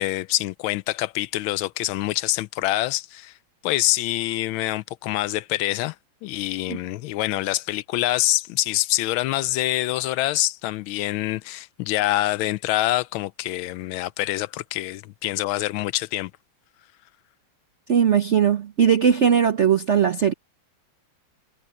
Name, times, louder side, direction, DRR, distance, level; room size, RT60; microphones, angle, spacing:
voice 1, 0.0-3.3 3.6-5.9 6.2-16.3, left 16 dB, 80° left, 1.4 m, -25 dB
voice 2, 17.9-20.3, right 8 dB, 65° right, 0.7 m, -19 dB
omnidirectional pair, 2.3 m